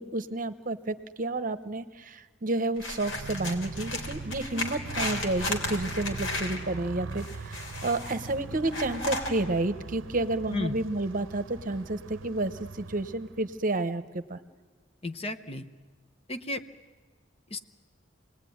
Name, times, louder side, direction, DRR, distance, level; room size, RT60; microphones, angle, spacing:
voice 1, 0.0-14.4, right 2 dB, 45° right, 11 dB, 0.9 m, -30 dB
sound 1, 2.8-6.6 7.1-8.3 8.6-9.3, left 2 dB, 85° left, 3.4 m, -35 dB
Motorcycle, 3.0-13.6, right 3 dB, 85° right, 0.7 m, -41 dB
voice 2, 15.0-15.6 16.3-16.6 17.5-17.6, left 2 dB, 30° left, 9 dB, 0.9 m, -33 dB
27.0 x 19.5 x 9.5 m, 1.4 s
head